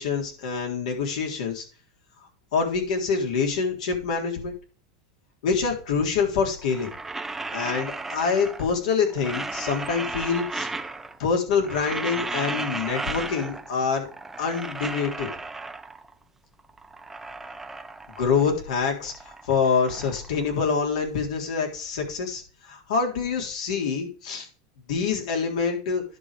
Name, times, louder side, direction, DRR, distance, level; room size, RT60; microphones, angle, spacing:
voice 1, 0.0-1.6 2.5-4.5 5.4-6.9 7.5-10.7 11.2-14.1 14.4-15.3 18.2-24.5 24.9-26.0, left 5 dB, 80° left, 2 dB, 3.7 m, -26 dB
sound 1, 6.6-8.8 9.1-11.3 11.5-13.8 14.1-16.1 16.6-18.6 18.9-21.1, right 3 dB, 10° right, 0.7 m, -35 dB
10.5 x 5.6 x 5.0 m, 0.37 s
supercardioid pair, 125°, 4 cm